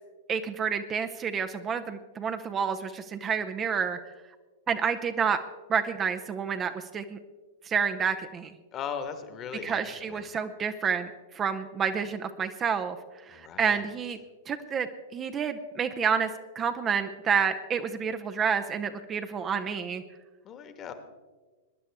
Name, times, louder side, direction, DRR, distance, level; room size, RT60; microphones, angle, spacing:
voice 1, 0.3-4.0 4.7-5.4 5.7-7.2 7.7-8.5 9.6-13.0 13.3-14.2 14.5-16.3 16.5-20.0, right 6 dB, 25° right, 8 dB, 0.7 m, -29 dB
voice 2, 8.7-10.2 13.3-13.8 20.4-20.9, left 7 dB, 30° left, 9 dB, 1.5 m, -38 dB
21.5 x 11.0 x 3.6 m, 1.3 s
figure-of-eight pair, 100°, 0 cm